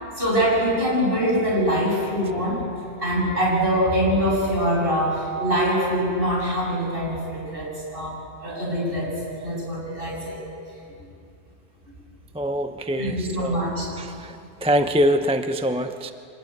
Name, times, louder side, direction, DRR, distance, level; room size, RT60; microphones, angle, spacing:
voice 1, 0.2-2.6 3.0-10.4 13.0-13.9, equal, 55° right, -4 dB, 8.2 m, -24 dB
voice 2, 12.3-13.7 14.0-16.1, equal, 5° right, 7 dB, 0.7 m, -24 dB
26.0 x 20.0 x 9.3 m, 2.5 s
omnidirectional pair, 1.1 m